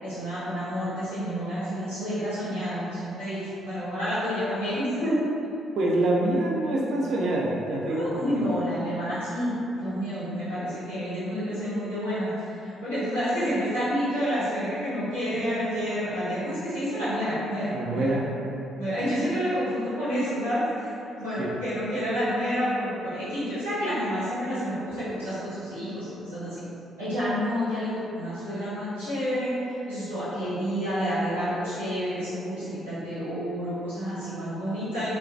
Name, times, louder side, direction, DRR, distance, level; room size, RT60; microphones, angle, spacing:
voice 1, 0.0-5.1 7.8-9.5 9.8-18.0 18.8-20.9 21.2-26.6 27.0-29.6 29.9-35.2, equal, 85° right, -17 dB, 1.2 m, -29 dB
voice 2, 5.8-8.2 17.7-18.2 21.4-21.5, right 1 dB, 55° right, -4 dB, 0.4 m, -25 dB
2.2 x 2.1 x 2.6 m, 2.8 s
figure-of-eight pair, 45°, 0 cm